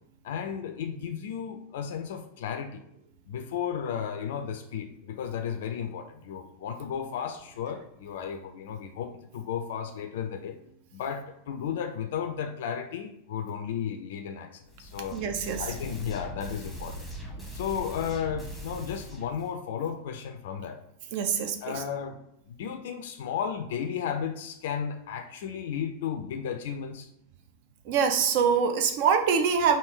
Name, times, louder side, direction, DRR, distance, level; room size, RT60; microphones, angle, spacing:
voice 1, 0.2-2.8 3.3-10.6 10.9-15.2 15.6-17.1 17.5-20.8 21.6-22.2 22.5-27.1, left 8 dB, 55° left, 7 dB, 0.4 m, -34 dB
sound 1, 14.7-19.5, equal, 5° right, 1.1 m, -41 dB
voice 2, 15.1-15.6 21.1-21.6 27.9-29.8, right 6 dB, 45° right, 7 dB, 0.5 m, -24 dB
3.5 x 2.6 x 4.6 m, 0.75 s
figure-of-eight pair, 90°, 0 cm